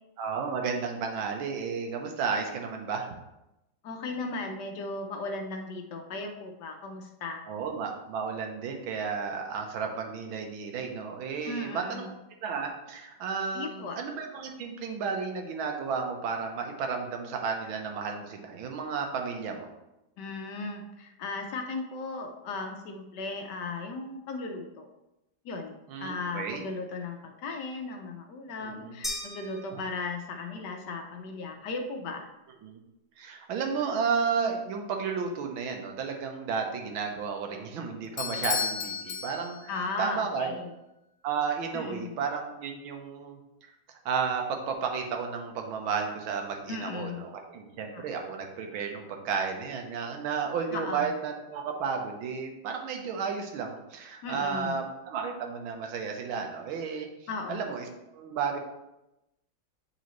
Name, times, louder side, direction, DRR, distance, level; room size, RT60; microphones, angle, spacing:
voice 1, 0.2-3.1 7.5-12.1 12.4-19.7 25.9-26.6 28.6-28.9 29.7-29.8 32.6-32.8 33.2-40.6 41.2-43.7 44.0-57.9 58.1-58.6, right 5 dB, 80° right, 3 dB, 1.7 m, -33 dB
voice 2, 3.8-7.4 11.4-12.1 13.5-14.0 20.2-24.9 25.4-32.3 39.7-40.7 41.7-42.2 46.7-47.3 47.9-48.0 50.7-51.1 54.2-54.8 57.3-57.6, left 3 dB, 65° left, 4 dB, 1.2 m, -36 dB
sound 1, 29.0-30.5, left 1 dB, ahead, 0.4 m, -39 dB
Bell / Doorbell, 38.2-39.9, left 8 dB, 85° left, 1.4 m, -33 dB
9.2 x 4.1 x 3.1 m, 0.92 s
omnidirectional pair, 2.2 m